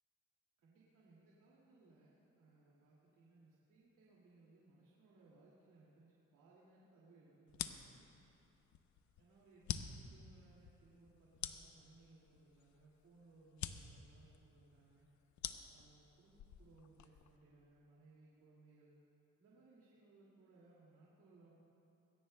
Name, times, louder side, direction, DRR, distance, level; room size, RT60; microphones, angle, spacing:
voice 1, 0.6-8.1 9.2-15.1 15.7-19.0 19.4-21.6, right 3 dB, 85° right, -5 dB, 2.3 m, -66 dB
sound 1, 7.5-17.4, left 10 dB, 70° left, 0.7 m, -48 dB
19.5 x 17.0 x 2.2 m, 2.9 s
cardioid pair, 90°, 30 cm